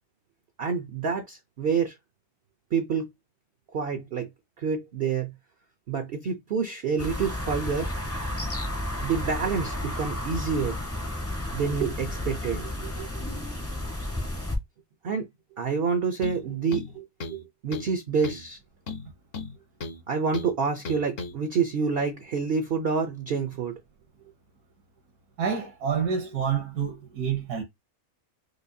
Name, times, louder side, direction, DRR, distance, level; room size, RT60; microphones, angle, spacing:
voice 1, 0.6-1.9 2.7-3.1 3.7-4.3 4.6-5.3 5.9-7.9 9.0-10.8 11.5-13.2 15.0-15.3 15.6-18.6 20.1-23.8, right 5 dB, 60° right, 0.6 m, -28 dB
sound 1, 7.0-14.6, left 1 dB, 15° left, 0.5 m, -32 dB
sound 2, 16.2-16.4 16.7-17.4 17.7-17.9 18.2-18.5 18.9-20.0 20.3-20.5 20.8-21.3, left 3 dB, 50° left, 0.8 m, -36 dB
voice 2, 25.4-27.6, right 7 dB, 80° right, 1.4 m, -28 dB
4.9 x 2.2 x 2.6 m
omnidirectional pair, 1.6 m